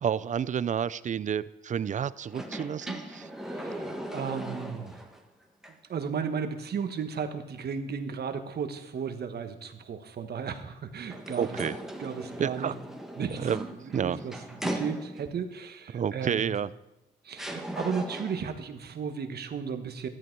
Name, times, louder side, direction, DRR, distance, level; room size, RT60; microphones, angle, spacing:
voice 1, 0.0-3.3 11.4-11.8 12.4-12.8 13.3-14.2 15.9-16.7, right 8 dB, 40° right, 18 dB, 0.5 m, -30 dB
Elevator Door opens and closes, 2.3-5.2 5.6-5.7 11.1-15.4 16.6-16.7 17.4-18.5, right 1 dB, ahead, 1.5 m, -38 dB
voice 2, 3.4-5.0 5.9-11.6 12.0-12.7 13.2-13.5 13.8-14.3 14.6-16.5 17.2-20.1, right 6 dB, 55° right, 7 dB, 1.3 m, -34 dB
13.0 x 11.0 x 4.6 m, 0.93 s
cardioid pair, 90°, 20 cm